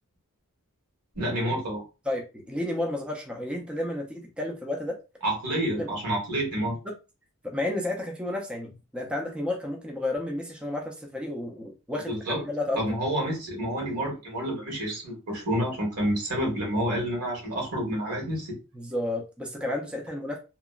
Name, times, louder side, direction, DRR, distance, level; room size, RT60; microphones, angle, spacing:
voice 1, 1.1-1.8 5.2-6.8 12.1-12.4 12.7-18.6, right 1 dB, 85° right, -1 dB, 1.3 m, -29 dB
voice 2, 2.0-5.0 5.8-5.9 7.4-8.7 8.9-12.8 18.7-20.4, left 1 dB, 5° right, 1 dB, 0.4 m, -31 dB
2.9 x 2.0 x 2.3 m, 0.30 s
head